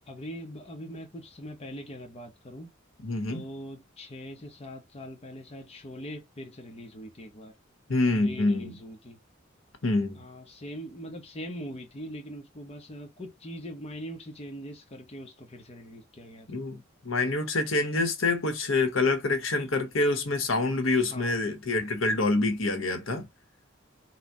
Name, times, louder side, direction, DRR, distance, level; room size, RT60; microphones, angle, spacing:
voice 1, 0.0-2.7 3.3-7.5 8.2-9.2 10.1-16.5 21.0-21.4, equal, 30° left, 0.8 m, -42 dB
voice 2, 3.0-3.4 7.9-8.7 9.8-10.2 16.5-23.3, left 2 dB, 75° left, 1.1 m, -26 dB
4.1 x 2.3 x 4.6 m
head